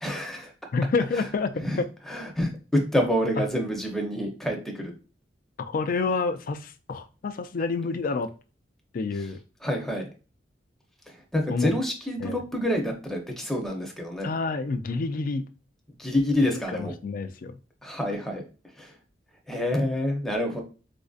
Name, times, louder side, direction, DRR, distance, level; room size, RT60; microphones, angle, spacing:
voice 1, 0.0-0.5 1.1-1.3 1.5-4.9 9.6-10.1 11.3-14.3 16.0-16.9 17.8-18.4 18.8-18.9 19.5-20.6, left 1 dB, ahead, 0.6 m, -27 dB
voice 2, 0.7-1.9 3.4-3.5 5.6-8.3 8.9-9.4 11.5-11.7 12.2-12.4 14.2-15.4 16.7-17.6, left 4 dB, 50° left, 0.3 m, -28 dB
4.1 x 2.5 x 2.3 m
head